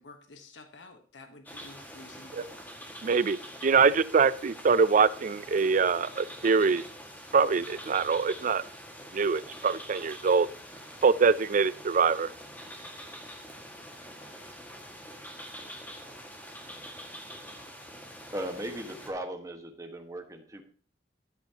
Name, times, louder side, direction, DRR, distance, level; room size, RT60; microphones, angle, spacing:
voice 1, 0.0-2.5, left 3 dB, 85° left, 6 dB, 1.2 m, -51 dB
sound 1, 1.5-19.1, equal, 10° left, 1.8 m, -45 dB
voice 2, 3.0-3.4 3.6-6.8 7.3-8.6 9.1-10.5 11.0-12.3, right 5 dB, 45° right, 18 dB, 0.4 m, -24 dB
voice 3, 18.3-20.6, right 1 dB, 20° right, 3 dB, 1.5 m, -37 dB
13.5 x 11.0 x 2.9 m, 0.41 s
head